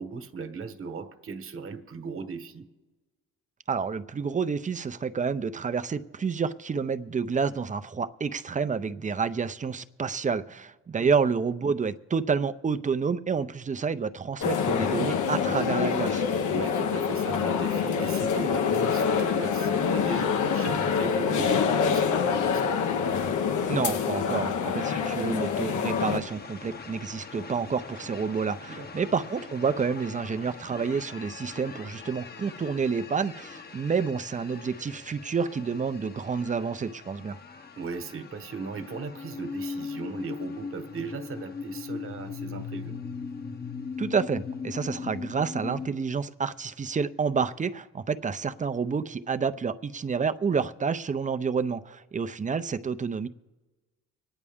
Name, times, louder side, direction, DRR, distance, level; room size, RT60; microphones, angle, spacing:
voice 1, 0.0-2.7 11.0-11.1 16.5-22.8 28.7-28.9 37.8-43.0, right 5 dB, 45° right, 9 dB, 1.3 m, -37 dB
voice 2, 3.7-16.2 23.7-37.4 44.0-53.3, right 5 dB, 25° right, 11 dB, 0.6 m, -29 dB
sound 1, 14.4-26.2, left 6 dB, 80° left, 1.0 m, -26 dB
sound 2, 25.9-45.9, left 5 dB, 30° left, 0.9 m, -40 dB
25.0 x 9.8 x 3.6 m, 1.2 s
cardioid pair, 90°, 30 cm